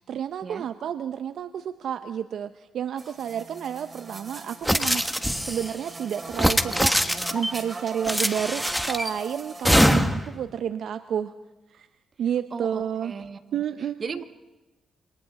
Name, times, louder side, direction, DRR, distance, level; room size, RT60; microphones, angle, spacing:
voice 1, 0.0-5.0 5.4-11.3 11.7-11.9 12.2-13.1 13.5-14.2, right 9 dB, 70° right, 11 dB, 0.7 m, -30 dB
sound 1, 3.0-9.9, right 3 dB, 35° right, 2.7 m, -40 dB
sound 2, 4.6-5.7 6.3-7.5 8.0-9.1 9.6-10.3, equal, ahead, 1.4 m, -23 dB
voice 2, 12.5-13.4 14.0-14.2, right 5 dB, 50° right, 10 dB, 1.5 m, -36 dB
28.0 x 25.5 x 4.2 m, 1.1 s
supercardioid pair, 65°, 0 cm